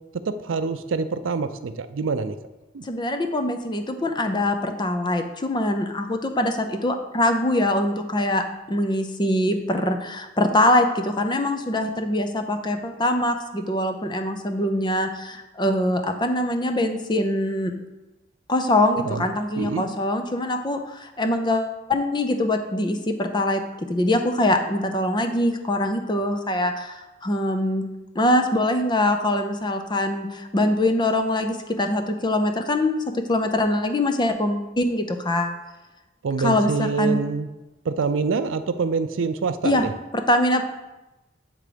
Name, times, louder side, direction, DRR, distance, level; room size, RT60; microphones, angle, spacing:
voice 1, 0.3-2.4 2.7-2.8 19.0-19.3 19.6-19.8 36.2-37.5 37.9-39.9, right 4 dB, 85° right, 11 dB, 0.4 m, -25 dB
voice 2, 2.8-8.4 8.7-17.7 18.5-23.6 23.9-27.8 28.2-35.6 36.4-37.2 39.6-39.8 40.3-40.6, left 1 dB, 25° left, 6 dB, 0.6 m, -23 dB
8.0 x 3.7 x 5.0 m, 1.1 s
head